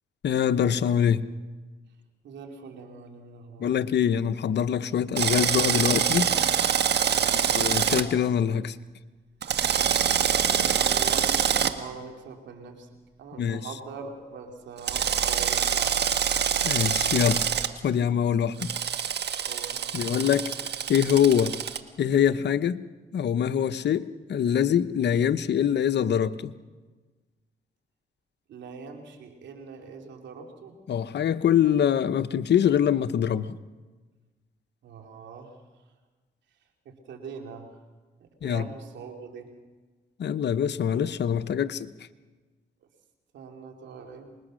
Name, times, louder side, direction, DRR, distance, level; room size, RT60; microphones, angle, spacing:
voice 1, 0.2-1.3 3.6-6.3 7.5-8.8 13.4-13.6 16.6-17.5 17.8-18.7 19.9-20.5 20.9-21.6 22.0-22.8 23.1-26.5 30.9-33.6 38.4-38.7 40.2-41.9, left 9 dB, 70° left, 12 dB, 0.9 m, -24 dB
voice 2, 2.2-3.7 7.0-7.6 10.6-12.9 13.2-16.1 19.4-19.8 28.5-30.8 34.8-35.6 36.8-37.8 38.2-39.5 43.3-44.3, right 5 dB, 90° right, 3 dB, 3.0 m, -42 dB
Drill, 5.2-8.0 9.4-11.7 14.9-17.7 18.6-21.8, right 8 dB, 70° right, 1.4 m, -25 dB
25.5 x 21.0 x 6.5 m, 1.3 s
cardioid pair, 65°, 18 cm